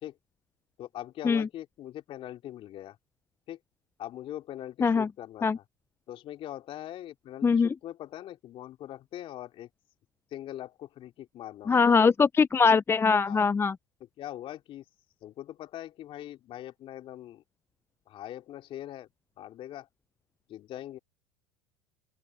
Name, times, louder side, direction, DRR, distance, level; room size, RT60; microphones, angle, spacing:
voice 1, 0.8-3.0 3.5-3.6 4.0-5.6 6.1-9.7 10.3-12.0 13.2-13.5 14.2-14.8 15.2-17.4 18.1-19.1 19.4-19.9 20.5-21.0, left 13 dB, 50° left, 3.2 m, -42 dB
voice 2, 7.4-7.7 11.7-13.8, left 5 dB, 20° left, 0.7 m, -22 dB
open air
hypercardioid pair, 80°, 12 cm